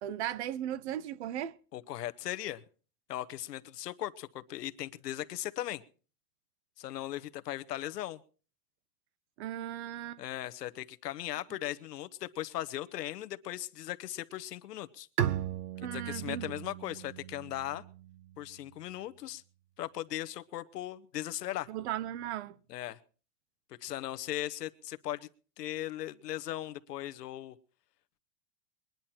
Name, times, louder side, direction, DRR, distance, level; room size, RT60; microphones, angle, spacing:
voice 1, 0.0-1.6 9.4-10.2 15.8-16.5 21.7-22.6, right 11 dB, 45° right, 0.7 m, -37 dB
voice 2, 1.7-2.6 3.1-5.8 6.8-8.2 10.2-15.1 15.8-17.8 18.4-19.4 19.8-21.7 22.7-23.0 23.8-25.2 25.6-27.5, left 13 dB, 90° left, 1.2 m, -38 dB
Bowed string instrument, 15.2-18.7, right 11 dB, 75° right, 1.3 m, -37 dB
22.0 x 10.5 x 4.4 m
supercardioid pair, 165°, 46 cm